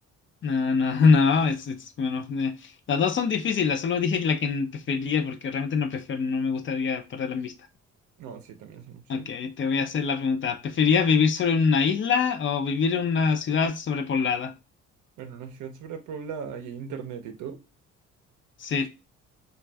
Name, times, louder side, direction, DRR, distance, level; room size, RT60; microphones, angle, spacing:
voice 1, 0.4-7.5 9.1-14.5 18.6-18.9, left 5 dB, 40° left, 0.5 m, -24 dB
voice 2, 8.2-9.3 15.2-17.6, right 7 dB, 80° right, 0.6 m, -38 dB
2.5 x 2.3 x 3.3 m
cardioid pair, 90°, 30 cm